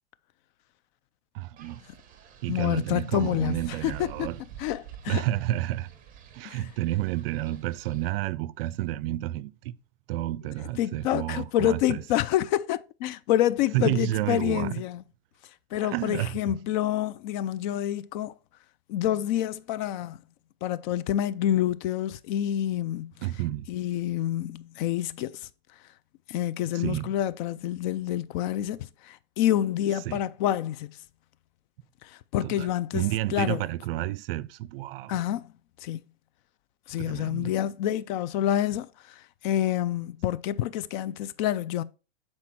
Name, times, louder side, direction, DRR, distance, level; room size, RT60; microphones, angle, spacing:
voice 1, 1.3-1.8 2.4-4.4 5.1-5.9 6.3-9.7 10.1-12.0 13.7-14.8 15.8-16.4 23.2-23.7 26.7-27.1 30.1-30.2 32.4-32.7 32.9-35.2 37.0-37.6, right 15 dB, 60° right, 0.5 m, -30 dB
Wind, 1.6-8.1, right 9 dB, 25° right, 1.2 m, -49 dB
voice 2, 2.5-4.3 4.6-5.2 6.4-6.7 10.8-15.0 15.7-18.3 18.9-20.2 20.6-23.1 23.7-25.5 26.3-31.0 32.0-33.0 33.3-33.6 35.1-35.5 35.8-36.0 36.9-41.8, left 12 dB, 45° left, 0.5 m, -28 dB
7.7 x 4.4 x 4.2 m
supercardioid pair, 140°, 32 cm